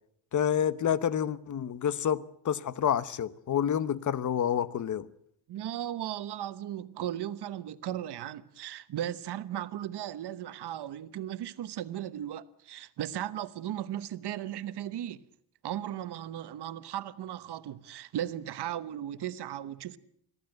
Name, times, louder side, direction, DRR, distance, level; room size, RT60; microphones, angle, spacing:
voice 1, 0.3-5.1, left 9 dB, 40° left, 0.9 m, -28 dB
voice 2, 5.5-15.2 15.6-20.0, right 11 dB, 55° right, 1.1 m, -36 dB
23.0 x 15.0 x 9.0 m
cardioid pair, 135°, 47 cm